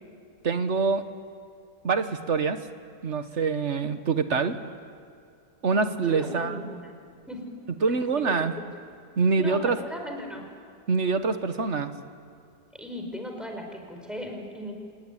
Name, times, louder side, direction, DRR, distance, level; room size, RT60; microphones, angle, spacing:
voice 1, 0.4-1.0 1.8-2.6 3.0-4.6 5.6-6.7 7.8-8.5 9.2-9.8 10.9-11.9, right 4 dB, 45° right, 9 dB, 1.5 m, -25 dB
voice 2, 6.1-6.9 7.3-7.4 7.9-8.7 9.4-10.4 12.7-14.7, equal, ahead, 2 dB, 4.7 m, -37 dB
28.5 x 17.5 x 10.0 m, 2.5 s
omnidirectional pair, 1.8 m